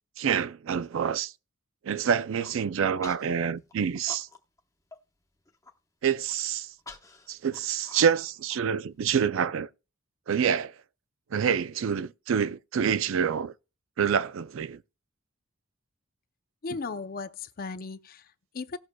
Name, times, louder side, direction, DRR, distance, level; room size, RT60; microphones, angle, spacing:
voice 1, 0.2-1.3 1.8-4.3 6.0-6.7 7.3-9.7 10.3-10.7 11.3-13.5 14.0-14.8, right 7 dB, 65° right, 0.4 m, -27 dB
Human voice, 2.1-2.6 3.0-3.3 3.7-4.6 4.9-5.0 5.4-5.7 6.3-9.1, left 3 dB, 15° left, 0.9 m, -48 dB
voice 2, 16.6-18.8, left 4 dB, 45° left, 0.5 m, -37 dB
18.5 x 6.3 x 2.2 m
head